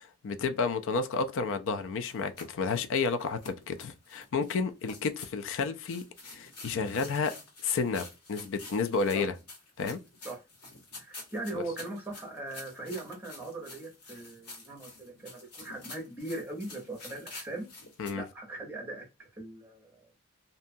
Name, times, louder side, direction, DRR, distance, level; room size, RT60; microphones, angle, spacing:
voice 1, 0.0-6.0 6.3-7.3 7.6-9.3 9.8-10.0 11.5-11.6 18.0-18.2, left 4 dB, 60° left, 0.4 m, -31 dB
Running In Woods, 2.1-18.1, left 3 dB, 80° left, 1.4 m, -49 dB
voice 2, 11.0-17.7 18.1-20.2, right 2 dB, 10° right, 0.8 m, -40 dB
2.7 x 2.2 x 2.5 m
head